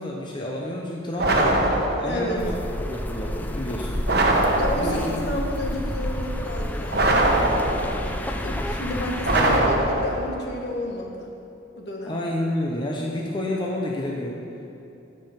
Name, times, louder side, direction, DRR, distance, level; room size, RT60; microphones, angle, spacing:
voice 1, 0.0-4.0 4.8-5.2 9.3-9.7 12.1-14.5, left 1 dB, 25° left, -2 dB, 0.8 m, -30 dB
sound 1, 1.2-2.3 4.1-5.2 6.9-8.1 9.2-10.4, right 1 dB, 55° right, 1.1 m, -22 dB
voice 2, 2.0-2.5 4.6-11.3 11.8-12.2, left 1 dB, 60° left, 0 dB, 1.4 m, -31 dB
sound 2, 2.4-9.6, left 1 dB, 10° left, 0.4 m, -30 dB
13.5 x 5.4 x 5.8 m, 2.9 s
head